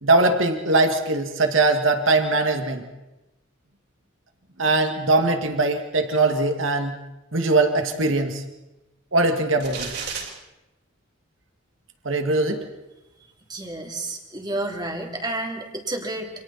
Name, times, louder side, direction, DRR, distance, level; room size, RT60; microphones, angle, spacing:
voice 1, 0.0-2.8 4.6-7.0 7.3-8.4 9.1-9.9 12.1-12.6, right 2 dB, 90° right, 5 dB, 2.2 m, -21 dB
sound 1, 9.6-10.3, right 5 dB, 55° right, 5.2 m, -32 dB
voice 2, 13.5-16.3, right 2 dB, 20° right, 2 dB, 3.2 m, -30 dB
28.5 x 27.0 x 4.3 m, 1.0 s
head